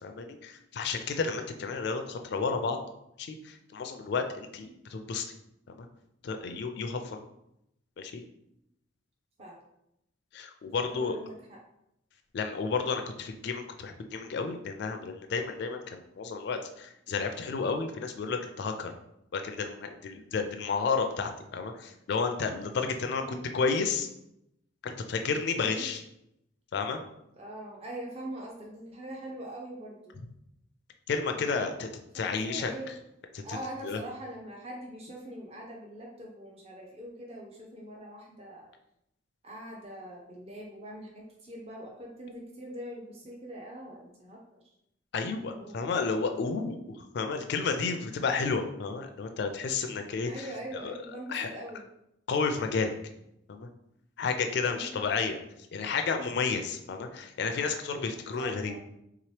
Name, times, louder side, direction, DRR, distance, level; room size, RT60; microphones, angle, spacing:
voice 1, 0.0-2.8 3.2-5.2 5.7-5.9 6.2-7.2 8.0-8.2 10.3-11.2 12.3-18.9 19.3-24.1 24.8-26.0 26.7-27.0 30.2-30.3 31.1-31.9 32.1-32.7 33.3-33.6 33.8-34.0 45.1-50.5 50.8-51.0 51.3-51.5 52.3-52.9 53.5-53.7 54.2-55.4 55.7-58.7, left 4 dB, 60° left, 5 dB, 0.4 m, -31 dB
voice 2, 10.8-11.6 23.2-23.5 25.6-25.9 27.3-30.2 32.1-33.0 33.4-38.7 39.4-44.6 45.5-45.8 50.2-51.8 54.6-55.0 58.4-58.8, right 1 dB, 35° right, -2 dB, 0.6 m, -43 dB
3.6 x 2.9 x 3.1 m, 0.81 s
head